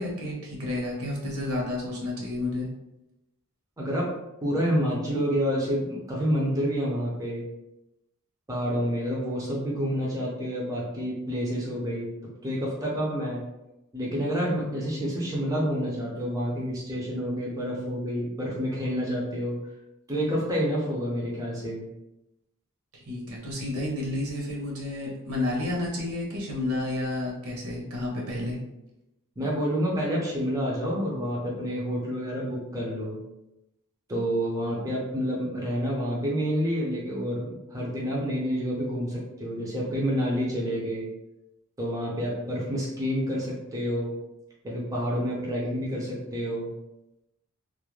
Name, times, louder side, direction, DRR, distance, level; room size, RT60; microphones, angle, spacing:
voice 1, 0.0-2.7 23.0-28.6, left 2 dB, 70° right, -3 dB, 0.8 m, -31 dB
voice 2, 3.8-4.1 4.4-7.4 8.5-12.1 12.4-13.4 13.9-19.6 20.1-21.8 29.4-33.2 34.1-41.1 41.8-44.1 44.6-46.7, equal, 15° right, -4 dB, 0.5 m, -28 dB
2.3 x 2.0 x 3.1 m, 0.92 s
head